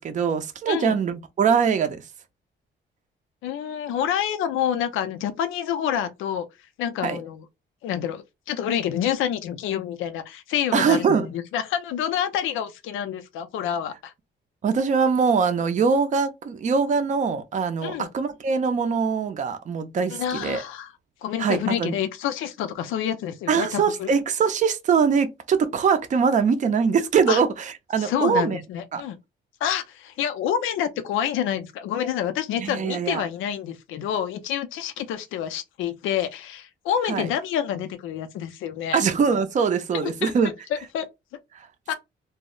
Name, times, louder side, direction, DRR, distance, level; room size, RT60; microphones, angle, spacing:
voice 1, 0.0-2.0 7.0-7.2 10.7-11.3 14.6-20.6 21.4-22.0 23.5-28.6 28.9-29.0 32.6-33.2 37.0-37.3 38.9-40.5 41.5-41.7, right 6 dB, 40° right, 0.5 m, -22 dB
voice 2, 3.4-6.5 6.8-7.4 7.8-14.1 17.8-18.1 20.1-20.9 21.2-24.1 27.3-27.4 28.0-29.2 29.6-39.0 39.9-40.3 40.7-41.1 41.9-42.0, left 9 dB, 85° left, 0.4 m, -28 dB
2.0 x 2.0 x 3.6 m
cardioid pair, 90°, 20 cm